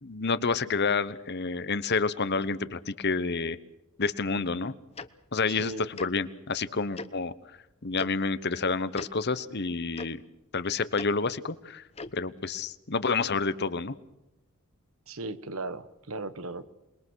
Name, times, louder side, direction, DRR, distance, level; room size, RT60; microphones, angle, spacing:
voice 1, 0.0-3.6 4.0-4.7 5.3-7.3 7.8-10.2 10.5-11.8 12.1-13.9, left 4 dB, 50° left, 14 dB, 1.1 m, -29 dB
Tick-tock, 5.0-5.1 5.9-6.1 6.9-7.1 7.9-8.1 8.9-9.1 9.9-10.1 10.9-11.1 11.9-12.1, left 3 dB, 30° left, 0.9 m, -38 dB
voice 2, 15.1-16.7, right 2 dB, 70° right, 13 dB, 1.3 m, -37 dB
27.5 x 21.5 x 6.4 m, 0.91 s
head